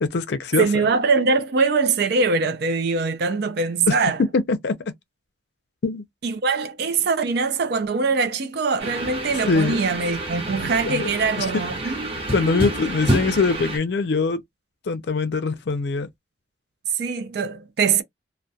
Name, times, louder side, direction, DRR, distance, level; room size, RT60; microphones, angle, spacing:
voice 1, 0.0-0.9 3.9-4.0 4.3-4.8 5.8-6.0 9.5-9.8 10.9-11.1 11.4-11.5 12.3-14.4 14.9-16.1, left 4 dB, 65° left, 0.5 m, -22 dB
voice 2, 0.6-4.2 6.2-12.9 17.0-18.0, right 4 dB, 60° right, 0.4 m, -23 dB
sound 1, 8.8-13.8, right 1 dB, 30° right, 1.0 m, -28 dB
2.2 x 2.1 x 2.6 m
head